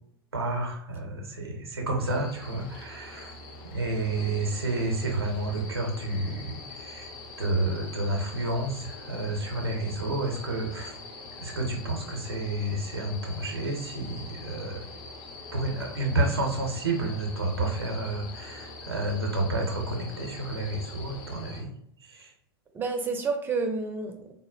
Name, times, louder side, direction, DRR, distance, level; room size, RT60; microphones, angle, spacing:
voice 1, 0.3-3.3 3.6-7.1 7.4-10.9 11.4-14.9 15.5-21.7 22.0-22.3, right 2 dB, 80° right, 1 dB, 0.5 m, -30 dB
sound 1, 2.1-21.6, left 3 dB, 35° left, 0.5 m, -43 dB
voice 2, 22.7-24.3, right 4 dB, 15° right, 4 dB, 0.4 m, -30 dB
3.5 x 2.0 x 2.3 m, 0.72 s
figure-of-eight pair, 90°, 13 cm